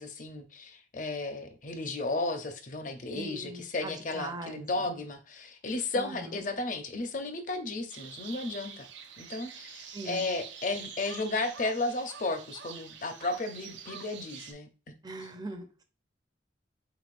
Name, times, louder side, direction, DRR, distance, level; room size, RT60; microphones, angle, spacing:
voice 1, 0.0-8.9 9.2-14.7, left 2 dB, 45° left, 7 dB, 0.6 m, -34 dB
voice 2, 3.1-5.0 5.9-6.4 9.9-10.3 15.0-15.8, right 2 dB, 20° right, 6 dB, 0.6 m, -41 dB
sound 1, 7.9-14.5, right 7 dB, 85° right, 0.7 m, -46 dB
4.9 x 4.0 x 2.5 m, 0.35 s
head